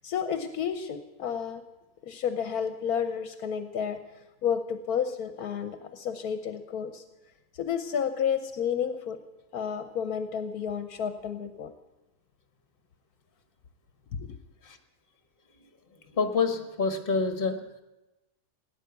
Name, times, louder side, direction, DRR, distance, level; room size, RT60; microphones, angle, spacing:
voice 1, 0.0-1.6 2.0-4.0 4.4-7.0 7.6-9.2 9.5-11.7 14.2-14.3, left 7 dB, 75° left, 9 dB, 1.4 m, -31 dB
voice 2, 15.9-17.8, left 4 dB, 35° left, 7 dB, 1.7 m, -28 dB
17.5 x 9.7 x 8.1 m, 1.0 s
omnidirectional pair, 1.6 m